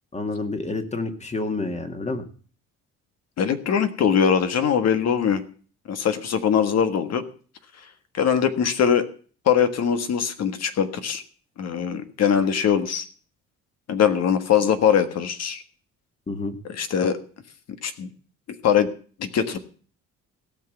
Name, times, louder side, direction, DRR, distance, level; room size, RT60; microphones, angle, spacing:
voice 1, 0.1-2.2 16.3-16.6, left 3 dB, 20° left, 7 dB, 2.0 m, -29 dB
voice 2, 3.4-5.4 5.9-7.2 8.1-9.1 9.4-11.2 11.6-13.1 13.9-15.6 16.7-17.2 17.8-18.1 18.6-18.9 19.2-19.6, left 8 dB, 55° left, 9 dB, 1.6 m, -21 dB
16.5 x 6.2 x 7.9 m, 0.42 s
cardioid pair, 110°, 31 cm